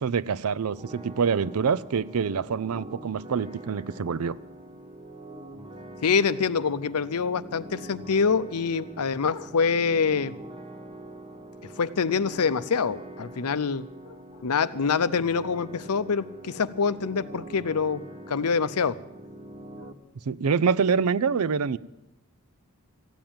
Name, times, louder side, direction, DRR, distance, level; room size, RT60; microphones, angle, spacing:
voice 1, 0.0-4.4 20.2-21.8, right 6 dB, 75° right, 19 dB, 0.5 m, -26 dB
sound 1, 0.7-19.9, right 1 dB, 25° right, 1.2 m, -44 dB
voice 2, 6.0-10.3 11.8-14.2 14.4-18.0 18.3-19.0, left 5 dB, 90° left, 15 dB, 0.7 m, -25 dB
15.0 x 9.2 x 8.7 m, 0.89 s
head